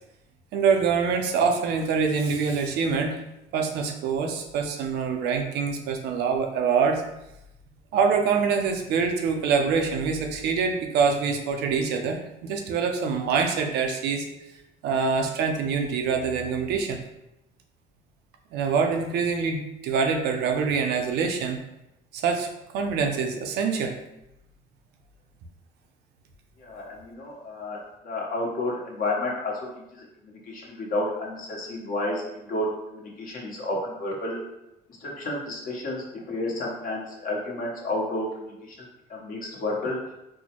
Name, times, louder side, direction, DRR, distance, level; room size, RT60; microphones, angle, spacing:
voice 1, 0.5-3.2 3.5-7.0 7.9-14.3 14.8-17.0 18.5-21.6 22.1-22.5 22.7-24.0, right 5 dB, 80° right, 4 dB, 0.6 m, -25 dB
voice 2, 26.6-29.5 29.9-34.4 35.0-38.8 39.1-40.0, left 1 dB, 55° left, -2 dB, 1.1 m, -31 dB
4.3 x 2.1 x 2.9 m, 0.89 s
cardioid pair, 110°, 17 cm